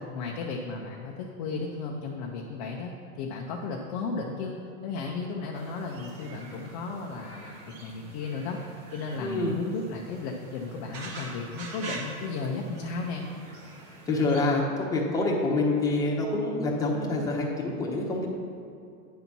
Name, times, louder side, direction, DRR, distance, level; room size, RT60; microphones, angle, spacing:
voice 1, 0.1-4.6 4.8-8.6 8.9-13.2, left 4 dB, 25° left, -1 dB, 0.4 m, -34 dB
sound 1, 5.5-14.4, right 3 dB, 40° right, 1.4 m, -44 dB
voice 2, 9.2-9.5 14.1-18.3, left 2 dB, 10° left, -3 dB, 0.8 m, -26 dB
9.3 x 4.0 x 5.9 m, 2.6 s
supercardioid pair, 145°, 45 cm